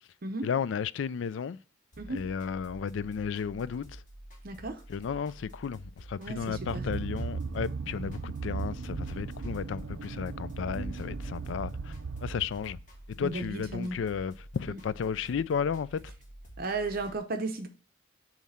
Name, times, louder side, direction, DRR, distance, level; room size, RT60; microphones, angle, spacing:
voice 1, 0.4-1.6 2.1-4.0 4.9-11.9 12.2-12.8 13.1-16.0, left 6 dB, 70° left, 0.3 m, -33 dB
sound 1, 1.9-17.2, right 1 dB, 40° left, 2.1 m, -49 dB
voice 2, 4.4-4.8 6.2-6.8 13.2-14.0 14.7-14.8 16.6-17.7, right 3 dB, 50° right, 0.7 m, -34 dB
sound 2, 6.3-12.9, right 4 dB, 85° right, 0.5 m, -37 dB
7.3 x 3.2 x 5.5 m
head